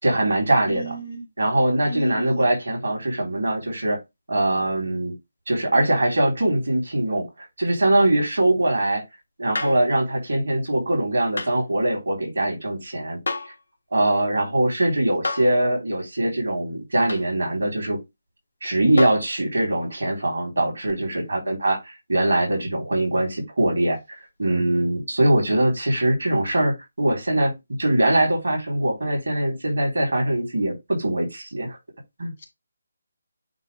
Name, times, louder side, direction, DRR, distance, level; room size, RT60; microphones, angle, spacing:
voice 1, 0.0-1.0 1.4-4.0 4.3-5.1 5.5-7.3 7.6-9.0 9.4-13.2 13.9-18.0 18.6-27.5 27.8-31.8 32.2-32.3, right 1 dB, 70° right, 3.8 m, -22 dB
voice 2, 0.7-1.2 1.9-2.4, left 1 dB, 55° left, 2.2 m, -32 dB
sound 1, 9.6-9.9 11.4-11.6 13.3-13.6 15.2-15.6 17.1-17.3 19.0-19.3 20.9-21.0, left 2 dB, 75° left, 1.3 m, -29 dB
9.0 x 3.1 x 3.4 m
figure-of-eight pair, 150°, 0 cm